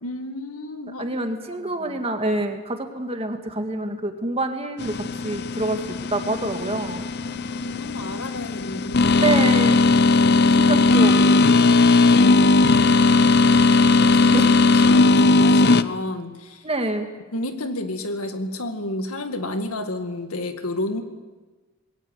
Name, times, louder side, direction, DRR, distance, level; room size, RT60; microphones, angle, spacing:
voice 1, 0.0-1.2 1.5-2.0 7.2-9.4 10.1-10.6 13.8-16.6 17.3-21.0, left 1 dB, 90° left, 7 dB, 2.0 m, -32 dB
voice 2, 1.0-5.8 6.1-7.0 9.2-9.8 10.5-11.5 14.3-14.5 16.6-17.1, right 2 dB, 25° right, 5 dB, 1.9 m, -26 dB
sound 1, 4.8-15.8, left 3 dB, 50° left, 0.6 m, -17 dB
21.0 x 18.0 x 8.2 m, 1.2 s
head